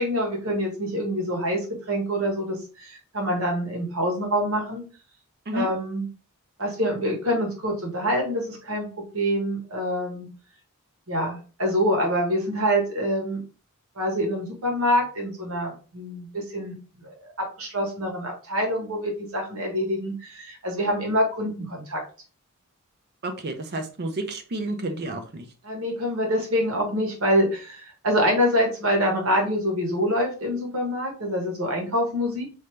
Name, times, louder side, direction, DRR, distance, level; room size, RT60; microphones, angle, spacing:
voice 1, 0.0-4.8 5.5-6.1 6.6-10.3 11.1-13.4 14.0-16.7 17.0-17.1 17.6-22.0 25.6-32.4, equal, 65° right, 1 dB, 1.2 m, -26 dB
voice 2, 23.2-25.5, right 2 dB, 50° right, 6 dB, 0.6 m, -30 dB
3.3 x 2.6 x 3.1 m, 0.37 s
head